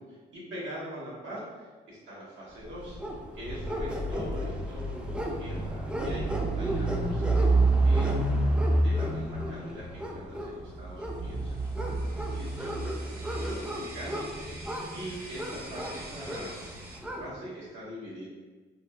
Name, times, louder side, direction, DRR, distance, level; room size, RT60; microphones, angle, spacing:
voice 1, 0.0-8.2 8.8-13.0 13.4-18.3, right 1 dB, 75° right, -7 dB, 1.2 m, -43 dB
sound 1, 2.7-17.3, right 2 dB, 5° right, 0.3 m, -29 dB
sound 2, 11.1-17.0, right 1 dB, 50° right, 0.7 m, -46 dB
3.0 x 2.1 x 2.5 m, 1.4 s
cardioid pair, 90°, 20 cm